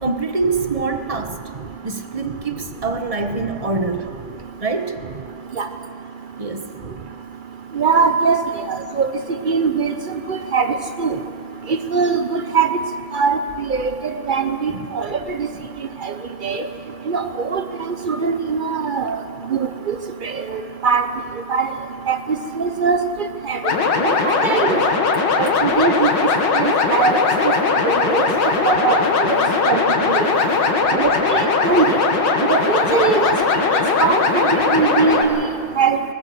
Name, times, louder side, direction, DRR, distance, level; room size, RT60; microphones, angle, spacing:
voice 1, 0.0-1.4 1.8-2.6 2.8-4.0 4.6-4.9 6.4-6.6 14.7-14.9 30.4-30.6, right 3 dB, 25° right, 7 dB, 0.9 m, -24 dB
voice 2, 7.8-8.4 8.7-9.1 9.5-9.9 10.3-10.7 11.0-11.1 11.9-12.7 13.1-13.4 13.7-13.9 14.3-15.1 16.4-16.6 17.1-17.2 17.5-17.6 18.1-19.2 19.5-19.6 19.9-20.0 20.2-20.3 20.8-21.0 21.5-21.7 22.1-22.2 22.6-23.0 23.5-23.6 24.0-24.8 25.4-26.1 26.6-27.2 27.8-28.3 28.6-29.0 29.3-29.4 29.7-29.8 31.0-31.8 32.5-33.4 34.0-35.5 35.8-36.0, right 5 dB, 80° right, 8 dB, 0.4 m, -20 dB
sound 1, 23.6-35.2, left 4 dB, 65° left, 2.3 m, -19 dB
20.5 x 19.5 x 7.8 m, 2.4 s
omnidirectional pair, 2.2 m